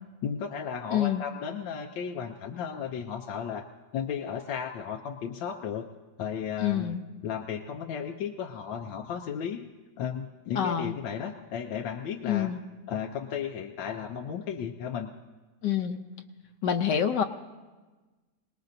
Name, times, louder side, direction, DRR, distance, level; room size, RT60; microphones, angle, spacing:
voice 1, 0.2-3.7 3.9-5.9 6.2-7.0 7.2-9.7 10.0-12.5 12.9-15.1, left 7 dB, 90° left, 3 dB, 1.5 m, -34 dB
voice 2, 0.9-1.2 6.6-7.0 10.6-10.9 12.2-12.6 15.6-16.0 16.6-17.2, left 9 dB, 75° left, 6 dB, 1.3 m, -26 dB
26.5 x 19.5 x 2.7 m, 1.3 s
omnidirectional pair, 2.0 m